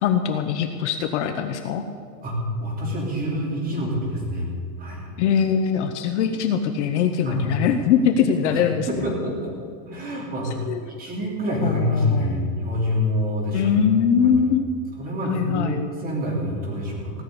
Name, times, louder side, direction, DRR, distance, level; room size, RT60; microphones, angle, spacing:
voice 1, 0.0-1.8 5.2-8.9 10.6-10.9 11.6-12.5 13.5-14.7 15.2-15.8, left 7 dB, 45° left, 6 dB, 0.9 m, -22 dB
voice 2, 2.2-4.4 4.8-5.0 7.2-7.4 8.5-8.6 8.9-9.5 9.9-13.8 14.1-14.3 15.0-17.1, equal, 15° right, -2 dB, 3.3 m, -26 dB
17.0 x 6.6 x 9.8 m, 2.2 s
supercardioid pair, 165°, 49 cm